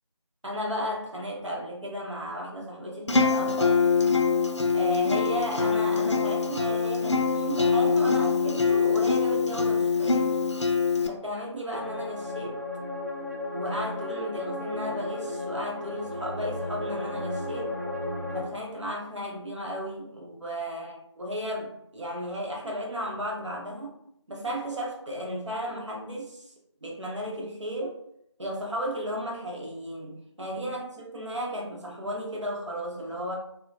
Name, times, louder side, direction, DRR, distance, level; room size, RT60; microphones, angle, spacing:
voice 1, 0.4-3.8 4.7-10.5 11.1-12.6 13.5-17.8 18.3-24.0 24.3-26.5 26.8-28.0 28.4-33.3, equal, 75° right, -2 dB, 0.8 m, -34 dB
Acoustic guitar, 3.1-11.1, left 5 dB, 70° left, 0.4 m, -24 dB
sound 1, 11.7-18.4, left 2 dB, 35° right, 0.4 m, -34 dB
2.7 x 2.0 x 2.8 m, 0.77 s
figure-of-eight pair, 175°, 15 cm